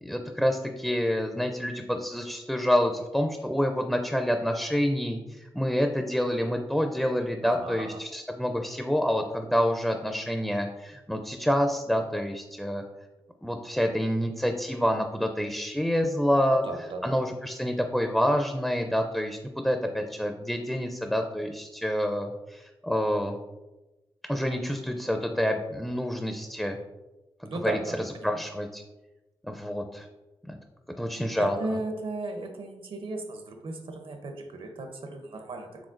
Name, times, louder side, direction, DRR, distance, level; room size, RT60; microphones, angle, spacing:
voice 1, 0.0-12.8 13.4-16.6 17.0-23.4 24.3-26.8 27.4-28.8 29.4-30.1 30.5-30.6 31.0-31.8, equal, ahead, 4 dB, 0.4 m, -27 dB
voice 2, 7.4-8.0 16.6-17.1 27.4-28.4 31.4-35.9, right 2 dB, 65° right, 5 dB, 0.7 m, -36 dB
4.9 x 3.4 x 2.5 m, 1.1 s
cardioid pair, 50°, 10 cm